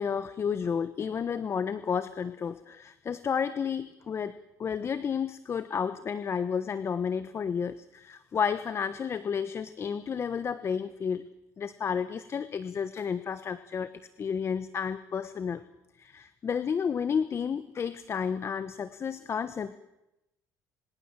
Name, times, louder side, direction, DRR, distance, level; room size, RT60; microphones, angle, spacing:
voice 1, 0.0-11.3 11.6-13.9 14.2-15.6 16.0-19.7, left 7 dB, 40° left, 13 dB, 1.2 m, -31 dB
26.5 x 25.5 x 7.6 m, 0.93 s
cardioid pair, 95°, 7 cm